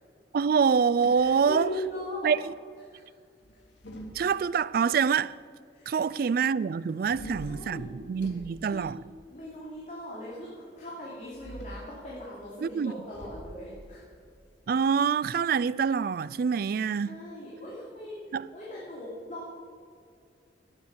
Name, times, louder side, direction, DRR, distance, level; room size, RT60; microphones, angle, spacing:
voice 1, 0.3-1.7 2.2-2.5 4.1-5.4 5.9-9.0 12.6-12.9 14.7-17.2 18.3-18.5, right 6 dB, 55° right, 0.3 m, -26 dB
sound 1, 0.7-2.1 3.4-4.8 7.0-9.6 11.2-11.9 13.1-15.5, equal, 80° left, 2.1 m, -46 dB
voice 2, 1.1-2.3 2.9-3.0 5.7-6.0 7.1-7.9 8.6-8.8 9.3-14.0 17.0-18.2 18.5-19.5, left 1 dB, 40° left, 2.8 m, -39 dB
12.5 x 9.5 x 7.0 m
head